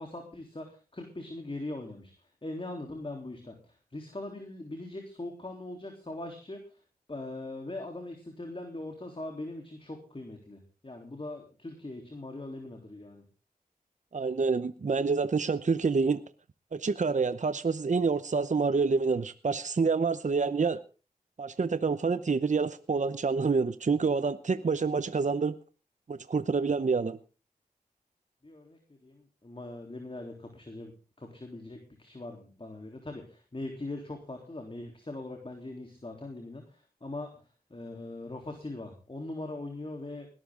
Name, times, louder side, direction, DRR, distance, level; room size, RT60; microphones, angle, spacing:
voice 1, 0.0-2.1 2.4-6.6 7.1-13.3 28.4-30.9 31.2-37.3 37.7-40.3, left 2 dB, 35° left, 3 dB, 3.6 m, -41 dB
voice 2, 14.1-16.2 16.7-20.8 21.4-25.6 26.1-27.2, right 4 dB, 50° right, 13 dB, 0.8 m, -27 dB
20.0 x 12.5 x 3.8 m, 0.35 s
cardioid pair, 45°, 16 cm